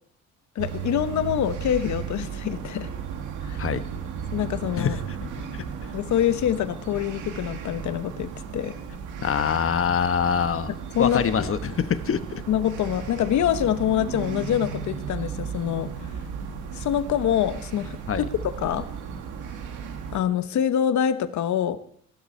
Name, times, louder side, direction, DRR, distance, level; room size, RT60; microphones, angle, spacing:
voice 1, 0.5-2.9 3.4-3.6 4.3-5.0 5.9-8.8 10.9-11.5 12.5-15.9 16.7-18.3 18.6-18.9 20.1-21.8, left 10 dB, 70° left, 11 dB, 1.1 m, -25 dB
sound 1, 0.6-20.2, right 7 dB, 90° right, 2.0 m, -35 dB
voice 2, 4.8-5.9 9.2-12.4 18.1-18.2, left 7 dB, 45° left, 11 dB, 1.1 m, -25 dB
17.5 x 12.5 x 4.4 m, 0.63 s
cardioid pair, 90°, 30 cm